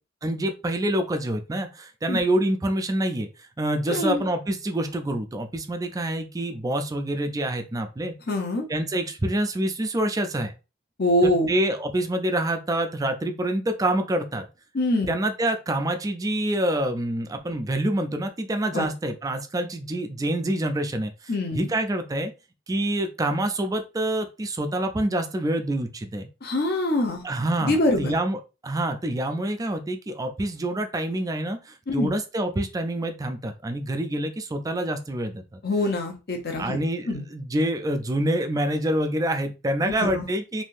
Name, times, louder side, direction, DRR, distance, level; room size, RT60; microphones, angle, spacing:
voice 1, 0.2-3.3 3.6-8.1 8.7-10.5 11.2-14.5 15.1-21.1 21.5-22.3 22.7-26.3 27.2-35.6 36.6-40.6, right 1 dB, 20° right, 6 dB, 0.4 m, -26 dB
voice 2, 3.9-4.2 8.3-8.7 11.0-11.5 14.7-15.1 18.7-18.9 21.3-21.6 26.4-27.2 27.6-28.1 31.9-32.1 35.6-36.8 37.1-37.2 39.9-40.3, left 1 dB, 55° left, 2 dB, 0.9 m, -24 dB
3.5 x 2.7 x 2.5 m, 0.30 s
head